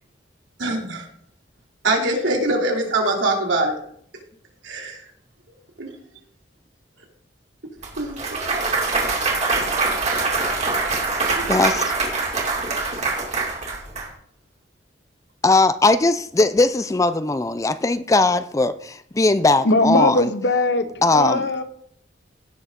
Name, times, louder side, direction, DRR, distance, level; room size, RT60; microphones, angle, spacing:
voice 1, 0.6-1.1 1.8-3.8 4.6-5.0 5.8-5.9 8.0-8.2 8.5-8.6 11.4-11.5 12.5-12.6, right 2 dB, 80° right, 0 dB, 2.9 m, -23 dB
Clapping / Cheering / Applause, 7.8-14.1, right 3 dB, 35° right, 2.4 m, -23 dB
voice 2, 11.5-11.9 15.4-20.3 21.0-21.5, left 2 dB, 15° left, 13 dB, 0.4 m, -19 dB
voice 3, 19.6-20.9 21.1-21.6, left 2 dB, 60° left, 10 dB, 1.0 m, -19 dB
17.0 x 6.3 x 3.7 m, 0.62 s
head